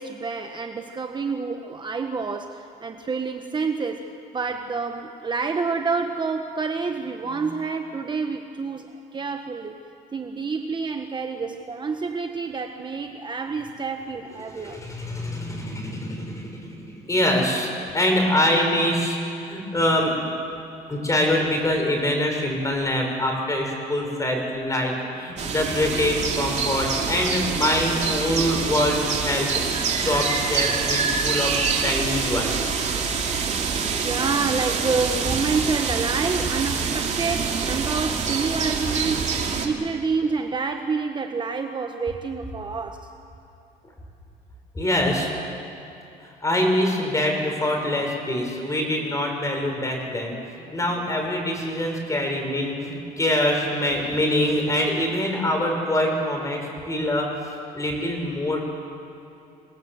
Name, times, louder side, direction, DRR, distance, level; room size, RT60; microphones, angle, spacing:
voice 1, 0.0-4.1 4.3-9.8 10.1-14.8 20.7-20.8 33.5-43.1, right 4 dB, 25° right, 6 dB, 1.1 m, -28 dB
voice 2, 14.5-20.3 20.9-31.5 31.8-32.7 44.7-45.3 46.2-57.3 57.7-58.6, left 1 dB, 20° left, 2 dB, 5.8 m, -24 dB
sound 1, 25.4-39.7, right 5 dB, 45° right, 2.8 m, -26 dB
27.5 x 19.0 x 7.9 m, 2.7 s
cardioid pair, 110°, 17 cm